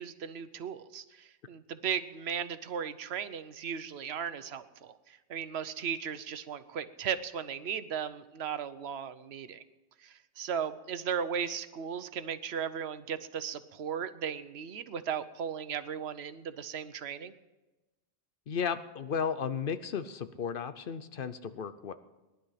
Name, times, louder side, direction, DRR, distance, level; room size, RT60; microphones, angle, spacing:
voice 1, 0.0-9.6 10.0-17.3, right 7 dB, 85° right, 12 dB, 1.0 m, -36 dB
voice 2, 18.5-21.9, left 7 dB, 60° left, 12 dB, 0.9 m, -34 dB
18.5 x 11.5 x 5.7 m, 1.1 s
omnidirectional pair, 1.0 m